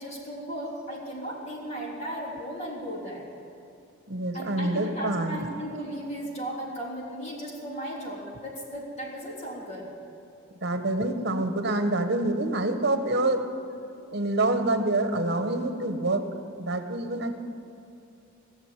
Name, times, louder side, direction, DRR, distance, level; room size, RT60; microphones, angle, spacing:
voice 1, 0.0-3.3 4.3-9.9, equal, 35° left, -4 dB, 3.5 m, -36 dB
voice 2, 4.1-5.5 10.6-13.5 14.1-16.3 16.6-17.4, right 2 dB, 55° right, 7 dB, 1.2 m, -26 dB
18.0 x 7.3 x 8.9 m, 2.7 s
head